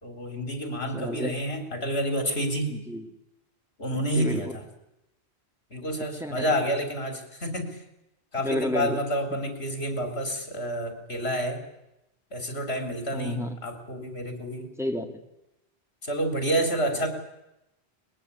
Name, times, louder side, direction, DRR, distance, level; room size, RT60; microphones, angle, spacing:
voice 1, 0.0-2.7 3.8-4.6 5.7-7.8 8.3-11.6 12.3-14.7 16.0-17.1, equal, 70° left, 5 dB, 4.1 m, -29 dB
voice 2, 0.9-1.4 2.7-3.1 3.9-4.6 6.2-6.4 8.4-9.0 13.1-13.6 14.8-15.2, left 1 dB, ahead, 3 dB, 2.4 m, -31 dB
22.5 x 20.0 x 8.5 m, 0.88 s
omnidirectional pair, 1.1 m